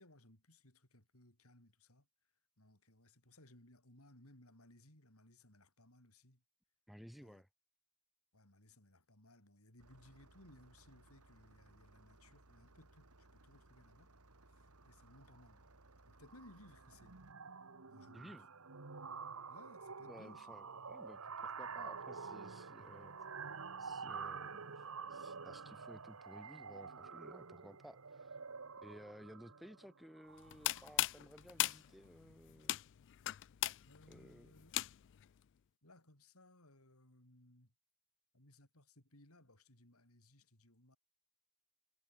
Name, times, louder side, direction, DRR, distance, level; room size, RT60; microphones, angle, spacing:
voice 1, 0.0-2.1 2.6-6.4 7.2-7.4 8.3-14.1 14.5-15.6 16.1-17.2 17.9-18.4 19.5-20.5 33.8-34.9 35.8-37.7 38.3-41.0, left 1 dB, 75° left, 7.4 m, -63 dB
voice 2, 6.9-7.5 18.1-18.5 20.1-23.1 23.8-28.4 28.8-32.8 34.1-34.6, equal, ahead, 2.2 m, -57 dB
Engine starting, 9.8-17.3, right 2 dB, 85° right, 4.0 m, -64 dB
sound 1, 15.1-15.4 15.7-15.9 16.2-31.1, right 5 dB, 65° right, 1.5 m, -48 dB
sound 2, 30.4-35.2, left 15 dB, 60° left, 0.4 m, -39 dB
head